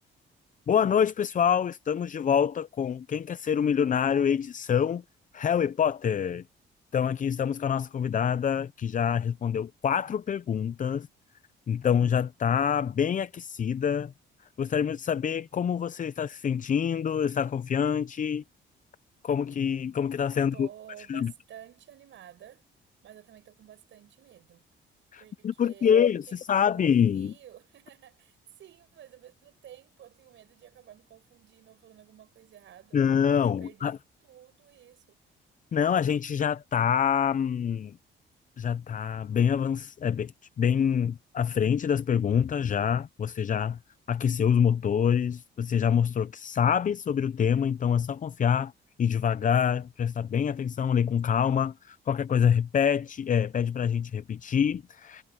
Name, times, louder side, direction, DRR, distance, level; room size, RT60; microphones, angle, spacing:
voice 1, 0.7-5.0 5.3-6.4 6.9-11.1 11.7-14.1 14.6-18.4 19.2-20.7 21.1-21.3 25.1-27.3 32.9-34.0 35.7-38.0 38.6-40.3 40.6-43.8 44.1-48.7 49.0-55.2, left 8 dB, 40° left, 0.6 m, -26 dB
voice 2, 20.3-22.7 23.0-24.6 25.2-26.9 27.1-33.0 33.4-34.0 34.2-35.2, right 11 dB, 70° right, 6.7 m, -52 dB
cardioid pair, 90°, 20 cm